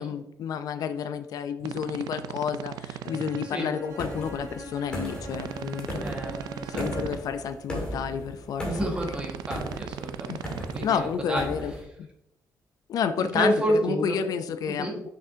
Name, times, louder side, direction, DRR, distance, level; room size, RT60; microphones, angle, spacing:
voice 1, 0.0-6.0 6.7-8.7 10.3-10.4 10.8-11.7 12.0-12.1 12.9-15.1, left 7 dB, 65° left, 9 dB, 0.5 m, -30 dB
sound 1, 1.6-3.5 5.3-7.2 9.0-10.8, right 10 dB, 85° right, 0.4 m, -38 dB
Bowed string instrument, 3.0-7.3, equal, 60° right, 2.1 m, -42 dB
sound 2, 4.0-11.8, equal, 15° left, 1.9 m, -37 dB
voice 2, 6.0-7.2 8.6-11.5 13.2-14.2 14.7-14.9, right 1 dB, 15° right, -1 dB, 1.6 m, -30 dB
6.7 x 6.0 x 2.7 m, 0.79 s
cardioid pair, 160°, 7 cm